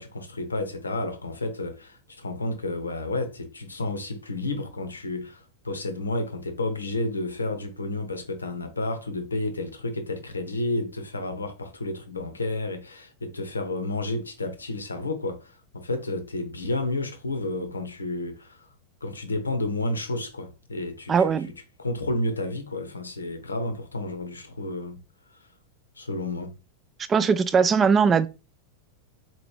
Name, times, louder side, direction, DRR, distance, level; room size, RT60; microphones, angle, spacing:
voice 1, 0.0-18.6 19.0-21.3 21.8-25.0 26.0-26.6, left 2 dB, 75° left, 0.7 m, -31 dB
voice 2, 21.1-21.5 27.1-28.3, right 6 dB, 20° right, 0.4 m, -20 dB
4.1 x 2.9 x 3.2 m
figure-of-eight pair, 90°, 0 cm